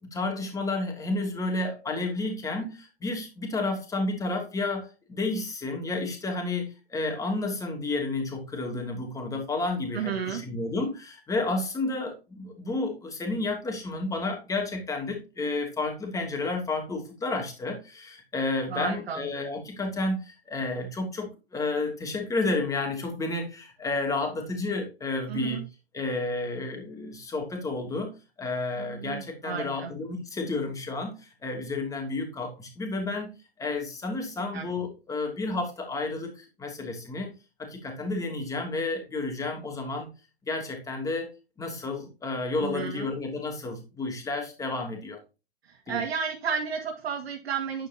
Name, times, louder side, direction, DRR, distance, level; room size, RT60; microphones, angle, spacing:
voice 1, 0.0-25.6 25.9-33.3 33.6-37.3 37.6-40.1 40.5-41.3 41.6-45.2 45.9-46.0, left 2 dB, 10° left, 2 dB, 3.0 m, -31 dB
voice 2, 9.9-10.4 18.7-19.2 25.3-25.6 28.8-29.9 34.5-34.7 42.6-43.1 45.6-47.9, right 6 dB, 75° right, 1 dB, 2.5 m, -32 dB
10.5 x 8.8 x 3.0 m, 0.29 s
hypercardioid pair, 140°, 32 cm